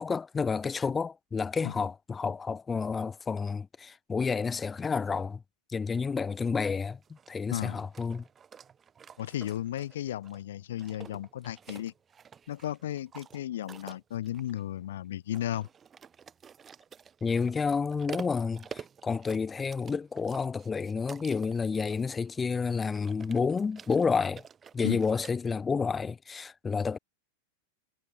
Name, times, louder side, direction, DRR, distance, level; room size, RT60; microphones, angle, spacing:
voice 1, 0.0-5.4 5.7-7.0 7.3-8.2 17.2-24.4 24.7-27.0, left 5 dB, 15° left, 4.3 m, -30 dB
sound 1, 6.4-25.3, right 7 dB, 20° right, 5.2 m, -50 dB
voice 2, 7.5-7.8 9.2-11.9 12.5-15.7 24.8-25.0, left 12 dB, 60° left, 3.4 m, -34 dB
figure-of-eight pair, 90°, 0 cm